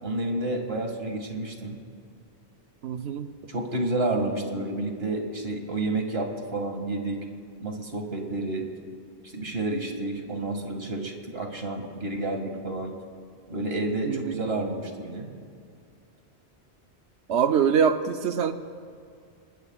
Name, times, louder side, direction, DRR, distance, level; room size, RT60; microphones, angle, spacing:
voice 1, 0.0-1.8 3.5-7.2 7.6-8.7 9.3-12.9 13.5-15.3, right 2 dB, 60° right, 3 dB, 2.4 m, -30 dB
voice 2, 2.8-3.3 14.1-14.3 17.3-18.5, right 7 dB, 85° right, 8 dB, 1.0 m, -24 dB
29.0 x 20.5 x 2.4 m, 2.3 s
omnidirectional pair, 1.1 m